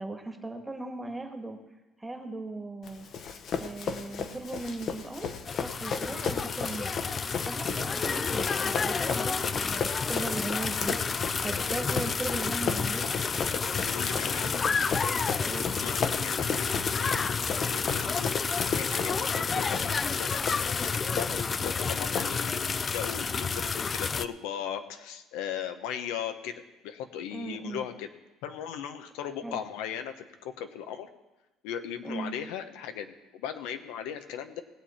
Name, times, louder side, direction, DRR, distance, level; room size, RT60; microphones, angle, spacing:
voice 1, 0.0-1.6 2.0-3.1 3.6-5.3 5.6-6.9 7.5-11.0 11.4-13.2 15.5-15.7 27.3-27.8 29.4-29.6 32.0-32.3, right 2 dB, 10° right, 4 dB, 1.5 m, -38 dB
Run, 2.8-22.7, left 6 dB, 50° left, 1.0 m, -36 dB
sound 1, 5.4-24.3, left 5 dB, 30° left, 0.4 m, -30 dB
voice 2, 13.7-14.5 15.8-20.7 21.1-28.1 28.4-31.1 31.6-34.6, left 9 dB, 80° left, 8 dB, 1.0 m, -38 dB
19.5 x 7.6 x 4.3 m, 1.1 s
cardioid pair, 115°, 0 cm